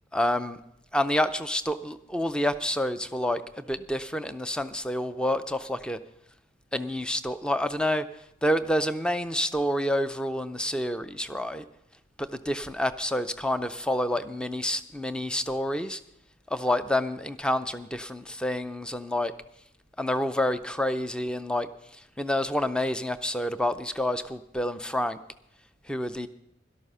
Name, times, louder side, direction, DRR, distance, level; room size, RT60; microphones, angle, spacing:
voice 1, 0.1-0.6 0.9-6.0 6.7-8.1 8.4-11.6 12.2-16.0 16.5-19.3 20.0-25.2 25.9-26.3, left 1 dB, 5° left, 12 dB, 0.4 m, -28 dB
12.5 x 12.0 x 5.5 m, 0.78 s
head